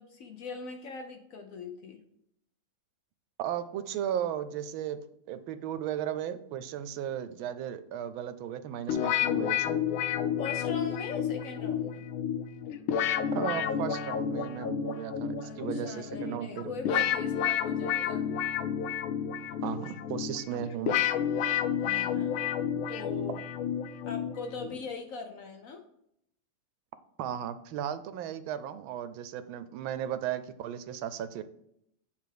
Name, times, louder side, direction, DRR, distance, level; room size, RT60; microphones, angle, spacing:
voice 1, 0.0-2.0 10.4-12.1 15.4-18.3 21.8-22.4 22.9-23.4 24.0-25.8, left 4 dB, 65° left, 5 dB, 0.8 m, -41 dB
voice 2, 3.4-9.7 13.3-17.0 19.6-21.0 27.2-31.4, right 10 dB, 80° right, 13 dB, 1.4 m, -36 dB
sound 1, 8.9-24.8, left 8 dB, 90° left, 1.4 m, -31 dB
8.5 x 3.5 x 4.8 m, 0.75 s
omnidirectional pair, 2.2 m